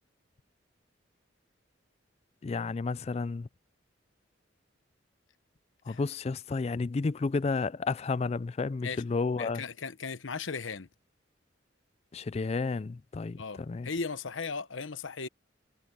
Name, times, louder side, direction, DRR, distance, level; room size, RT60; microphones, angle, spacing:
voice 1, 2.4-3.5 5.9-9.6 12.1-13.9, left 4 dB, 35° left, 0.3 m, -31 dB
voice 2, 9.4-10.9 13.4-15.3, left 4 dB, 85° left, 1.0 m, -37 dB
head